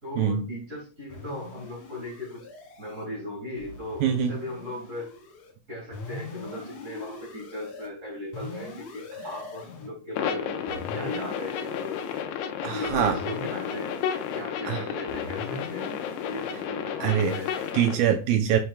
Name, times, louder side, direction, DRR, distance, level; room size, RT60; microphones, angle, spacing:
voice 1, 0.0-2.4 2.8-5.1 5.7-12.0 12.7-14.0 14.3-15.9 16.3-17.6, left 1 dB, 30° right, -2 dB, 1.5 m, -37 dB
sound 1, 1.1-3.1 3.6-5.5 5.9-7.9 8.3-9.9 10.7-12.2 12.8-14.5 15.1-16.7 17.2-17.7, left 3 dB, 55° left, 2.7 m, -42 dB
voice 2, 4.0-4.3 12.6-13.2 14.7-14.8 17.0-17.4 17.7-18.6, right 9 dB, 85° right, 6 dB, 2.1 m, -23 dB
sound 2, 10.1-17.9, left 8 dB, 85° left, 2.7 m, -32 dB
10.0 x 5.7 x 2.3 m, 0.37 s
omnidirectional pair, 4.7 m